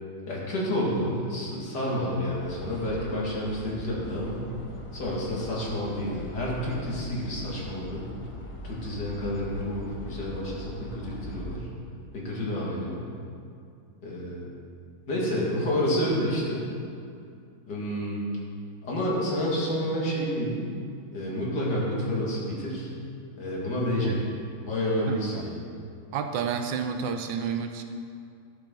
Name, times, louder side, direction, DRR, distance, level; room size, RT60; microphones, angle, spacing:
voice 1, 0.3-4.5 4.9-8.0 8.6-11.7 12.1-13.1 14.0-14.4 15.1-16.7 17.7-18.2 18.8-20.6 21.1-22.9 23.4-24.2 24.6-25.5, equal, 60° left, -5 dB, 2.7 m, -29 dB
sound 1, 2.4-11.6, left 1 dB, 30° left, 0.5 m, -41 dB
voice 2, 25.0-25.4 26.1-27.8, right 6 dB, 75° right, 6 dB, 1.3 m, -30 dB
11.5 x 8.5 x 3.9 m, 2.4 s
omnidirectional pair, 2.1 m